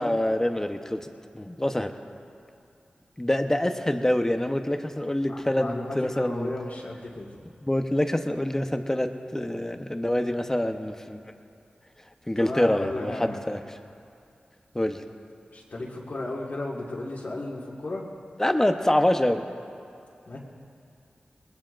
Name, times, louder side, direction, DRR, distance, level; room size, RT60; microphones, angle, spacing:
voice 1, 0.0-1.9 3.2-6.5 7.6-11.2 12.3-13.6 14.7-15.0 18.4-19.4, left 1 dB, 15° left, 6 dB, 0.9 m, -26 dB
voice 2, 5.3-7.3 12.4-13.4 15.5-18.1 20.3-20.4, left 2 dB, 65° left, -6 dB, 1.9 m, -34 dB
20.5 x 20.5 x 2.6 m, 2.5 s
cardioid pair, 55°, 3 cm